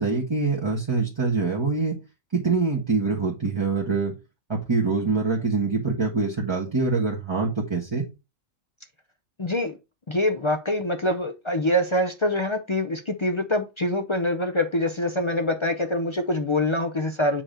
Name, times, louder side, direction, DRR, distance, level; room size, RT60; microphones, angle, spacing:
voice 1, 0.0-1.9 2.3-4.1 4.5-8.0, right 4 dB, 20° right, 1.2 m, -24 dB
voice 2, 9.4-9.7 10.1-17.4, left 1 dB, 45° left, 0.4 m, -25 dB
7.4 x 2.9 x 5.0 m
omnidirectional pair, 1.4 m